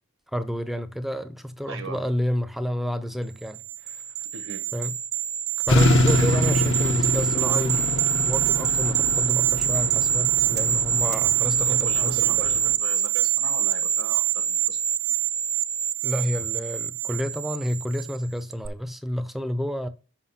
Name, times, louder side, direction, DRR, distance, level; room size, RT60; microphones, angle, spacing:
voice 1, 0.3-3.6 3.9-4.0 4.7-4.9 5.7-12.6 16.0-19.9, equal, ahead, 0.5 m, -30 dB
voice 2, 1.7-2.0 4.3-4.6 6.1-6.4 11.7-14.8, right 4 dB, 80° right, 0.9 m, -38 dB
sound 1, 3.5-18.2 18.5-18.7, right 11 dB, 45° right, 0.5 m, -25 dB
sound 2, 5.7-12.7, left 1 dB, 60° left, 0.9 m, -25 dB
5.7 x 5.6 x 5.6 m
head